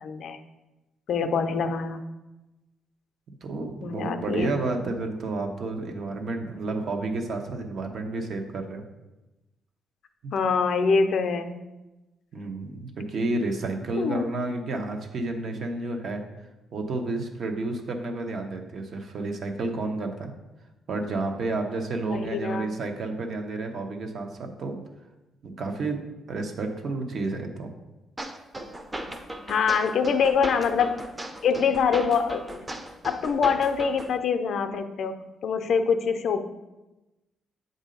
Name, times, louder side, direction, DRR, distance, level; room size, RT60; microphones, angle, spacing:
voice 1, 0.0-0.4 1.1-2.0 3.8-4.5 10.3-11.6 14.0-14.3 22.1-22.7 29.5-31.0 31.4-32.6 33.0-35.2 35.4-36.4, left 5 dB, 65° left, 8 dB, 0.5 m, -24 dB
voice 2, 3.4-8.8 10.2-10.3 12.3-16.2 16.7-20.3 20.9-24.8 25.4-26.0 26.3-27.7, right 2 dB, 60° right, 4 dB, 0.9 m, -30 dB
sound 1, 28.2-34.2, right 1 dB, 20° right, 0.6 m, -37 dB
7.5 x 2.7 x 5.1 m, 1.0 s
cardioid pair, 90°, 0 cm